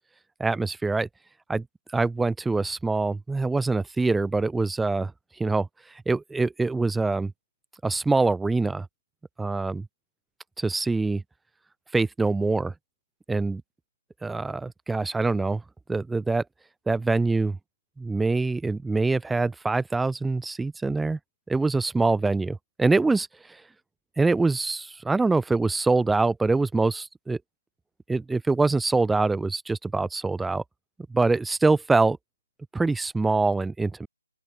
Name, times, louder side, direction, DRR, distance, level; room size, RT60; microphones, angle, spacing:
voice 1, 0.4-1.1 1.5-1.6 1.9-5.1 5.4-5.7 6.1-7.3 7.8-8.9 9.4-9.9 10.6-11.2 11.9-12.7 13.3-13.6 14.2-15.6 15.9-16.4 16.9-17.6 18.0-21.2 21.5-23.3 24.2-27.4 28.1-30.6 31.1-32.2 32.7-34.1, right 3 dB, 5° right, 1.7 m, -24 dB
open air
hypercardioid pair, 165°, 0 cm